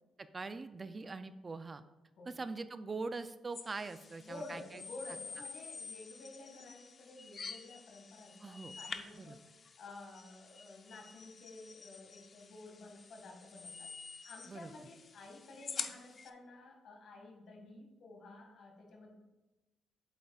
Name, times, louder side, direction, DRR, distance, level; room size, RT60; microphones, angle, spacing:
voice 1, 0.2-1.8 2.3-4.8 8.4-8.7 9.1-9.4 14.5-14.7, right 3 dB, 30° right, 12 dB, 0.4 m, -43 dB
sound 1, 3.5-16.3, left 5 dB, 45° left, 0.6 m, -48 dB
voice 2, 4.2-13.9 14.2-19.1, left 2 dB, 65° left, 1 dB, 1.9 m, -52 dB
8.1 x 7.9 x 2.4 m, 1.1 s
cardioid pair, 90°, 0 cm